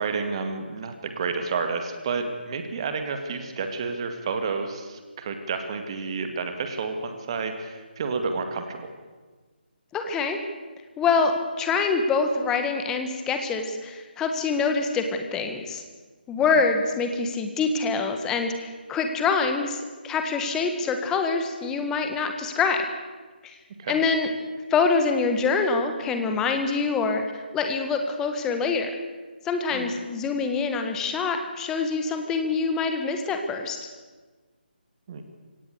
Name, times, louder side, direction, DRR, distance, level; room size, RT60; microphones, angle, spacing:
voice 1, 0.0-8.9 23.8-24.0 29.7-29.9 35.1-35.2, right 4 dB, 30° right, 6 dB, 2.1 m, -30 dB
voice 2, 9.9-10.4 11.0-15.8 16.3-22.8 23.4-23.5 23.9-24.3 24.7-28.9 29.4-33.8, left 4 dB, 10° left, 6 dB, 1.5 m, -25 dB
23.5 x 17.5 x 6.8 m, 1.3 s
figure-of-eight pair, 150°, 6 cm